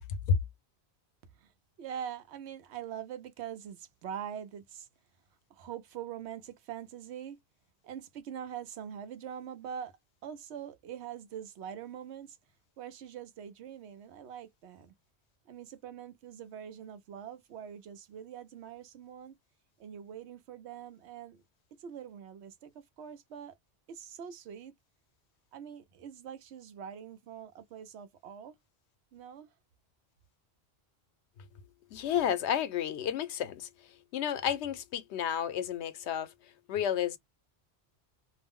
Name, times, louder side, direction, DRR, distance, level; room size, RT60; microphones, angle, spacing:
voice 1, 1.8-4.9 5.5-7.4 7.8-9.9 10.2-12.4 12.8-14.9 15.5-19.3 19.8-21.4 21.8-22.7 23.0-23.5 23.9-24.7 25.5-28.5 29.1-29.5, right 9 dB, 80° right, 0.9 m, -43 dB
voice 2, 31.9-33.7 34.1-36.3 36.7-37.2, left 8 dB, 90° left, 0.9 m, -31 dB
2.4 x 2.0 x 3.4 m
omnidirectional pair, 1.1 m